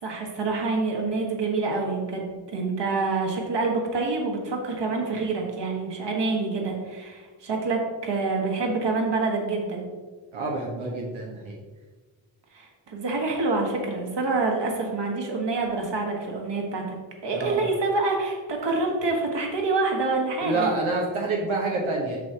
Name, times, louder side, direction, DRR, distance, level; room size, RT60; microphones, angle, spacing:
voice 1, 0.0-9.8 12.5-16.8 17.2-20.7, right 3 dB, 60° right, 0 dB, 1.7 m, -27 dB
voice 2, 10.3-11.6 17.3-17.6 20.4-22.2, right 3 dB, 90° right, -2 dB, 1.3 m, -27 dB
8.3 x 6.5 x 2.9 m, 1.4 s
wide cardioid pair, 105°, 46 cm